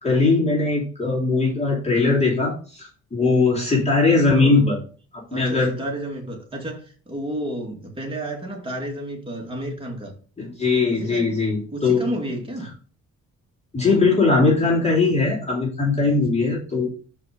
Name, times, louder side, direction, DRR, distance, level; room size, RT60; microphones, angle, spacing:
voice 1, 0.0-4.8 5.3-5.7 10.4-12.1 13.7-16.9, left 3 dB, 20° left, -4 dB, 2.8 m, -20 dB
voice 2, 4.3-4.8 5.3-10.1 10.9-11.4 11.7-12.7 16.0-16.2, right 1 dB, 15° right, -1 dB, 2.3 m, -31 dB
5.9 x 4.8 x 5.0 m, 0.39 s
cardioid pair, 90°, 30 cm